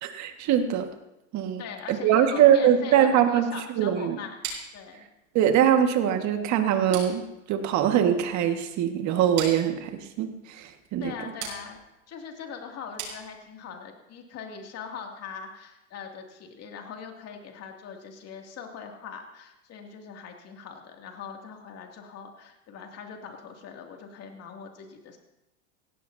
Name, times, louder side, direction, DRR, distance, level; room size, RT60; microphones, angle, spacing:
voice 1, 0.0-0.9 1.3-1.6 1.9-3.5 3.8-4.2 5.3-11.1, right 9 dB, 45° right, 6 dB, 1.7 m, -22 dB
voice 2, 1.6-4.5 4.7-5.1 11.0-11.8 12.1-25.2, left 6 dB, 40° left, 2 dB, 2.5 m, -41 dB
sound 1, 4.4-13.8, right 6 dB, 75° right, 5.9 m, -42 dB
17.0 x 16.0 x 2.8 m, 0.93 s
supercardioid pair, 115°, 39 cm